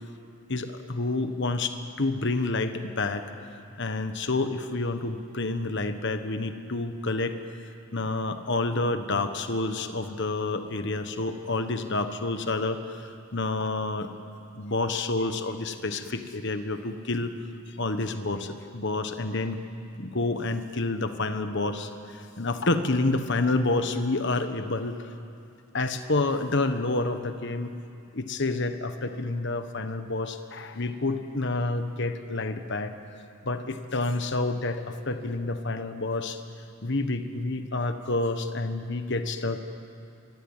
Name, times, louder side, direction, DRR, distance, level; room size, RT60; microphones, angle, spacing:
voice 1, 0.5-3.2 3.8-7.3 7.9-14.1 14.5-17.3 17.8-19.6 19.9-25.0 25.7-27.7 28.1-32.9 33.4-36.4 36.8-39.6, left 2 dB, 55° left, 8 dB, 1.4 m, -29 dB
24.0 x 23.0 x 9.0 m, 2.5 s
head